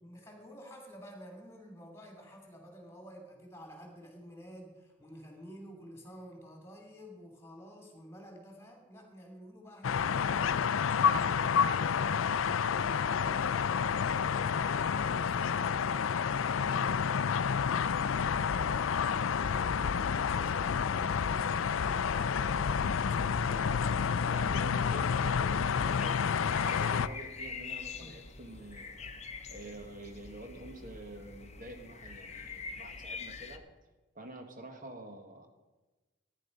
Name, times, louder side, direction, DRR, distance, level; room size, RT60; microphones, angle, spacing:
voice 1, 0.0-10.4 10.9-19.3 19.7-23.5 23.9-24.3 28.0-28.3, equal, 15° left, 3 dB, 2.7 m, -51 dB
sound 1, 9.8-27.1, left 6 dB, 90° left, 0.5 m, -29 dB
voice 2, 23.4-23.8 24.3-29.1 29.5-33.6 34.1-35.5, right 1 dB, 40° right, 4 dB, 1.5 m, -48 dB
sound 2, 25.8-33.6, left 5 dB, 35° left, 0.9 m, -44 dB
15.0 x 10.0 x 5.3 m, 1.1 s
head